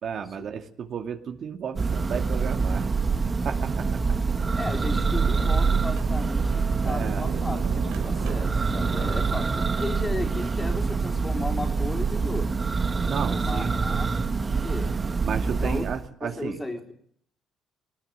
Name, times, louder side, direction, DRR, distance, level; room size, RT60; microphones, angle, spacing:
voice 1, 0.0-2.9 3.4-3.9 6.9-7.2 13.0-14.0 15.2-16.6, right 7 dB, 55° right, 5 dB, 2.3 m, -33 dB
Church bell, 1.8-16.1, right 4 dB, 25° right, 1.6 m, -25 dB
Sliding door, 3.6-4.5 5.1-5.2 5.8-10.6, right 8 dB, 80° right, 3.4 m, -39 dB
voice 2, 4.6-12.6 13.0-14.2 14.4-15.0 15.6-15.8 16.2-16.9, left 2 dB, 20° left, 4 dB, 4.0 m, -35 dB
20.5 x 19.0 x 9.4 m, 0.66 s
cardioid pair, 100°, 0 cm